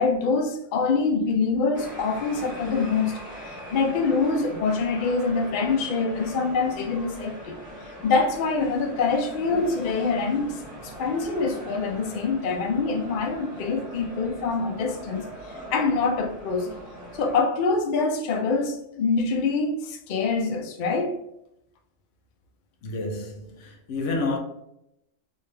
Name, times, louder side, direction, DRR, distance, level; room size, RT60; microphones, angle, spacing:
voice 1, 0.0-3.2 3.7-7.6 8.0-15.2 15.7-16.7 17.1-21.1, left 4 dB, 55° left, 0.6 m, -25 dB
sound 1, 1.7-17.4, equal, 5° right, 1.2 m, -40 dB
voice 2, 22.8-24.4, left 3 dB, 75° left, 1.0 m, -29 dB
3.3 x 2.7 x 3.2 m
omnidirectional pair, 1.3 m